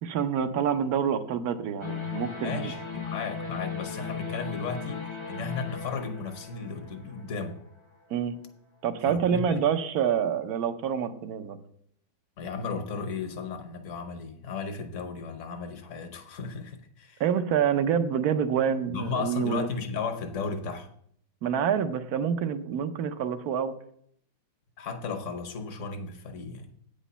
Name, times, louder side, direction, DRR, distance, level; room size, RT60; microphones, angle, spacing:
voice 1, 0.0-2.7 8.1-8.4 8.8-11.6 17.2-19.7 21.4-23.7, right 8 dB, 70° right, 10 dB, 1.2 m, -27 dB
sound 1, 1.8-7.9, left 6 dB, 25° left, 0.6 m, -37 dB
voice 2, 2.4-7.6 9.1-9.6 12.4-17.2 18.9-20.9 24.8-26.7, left 4 dB, 50° left, 7 dB, 1.2 m, -35 dB
8.8 x 5.1 x 5.5 m, 0.67 s
omnidirectional pair, 1.8 m